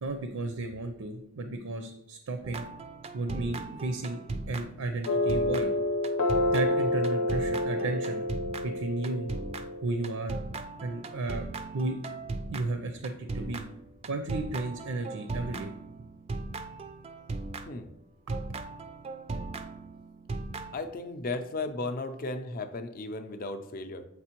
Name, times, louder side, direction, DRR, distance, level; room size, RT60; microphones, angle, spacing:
voice 1, 0.0-2.6 3.1-5.7 6.5-8.2 8.6-9.3 9.8-10.4 10.8-11.5 11.7-12.0 12.5-13.7 14.0-15.7 18.3-18.4, right 2 dB, 75° right, 6 dB, 0.5 m, -33 dB
sound 1, 2.4-17.9 18.3-20.8, right 3 dB, 25° right, 0.3 m, -38 dB
sound 2, 5.1-10.1, left 1 dB, 85° left, 0.8 m, -29 dB
voice 2, 20.7-24.0, left 2 dB, 40° left, 6 dB, 0.5 m, -35 dB
8.1 x 4.2 x 3.0 m, 0.85 s
head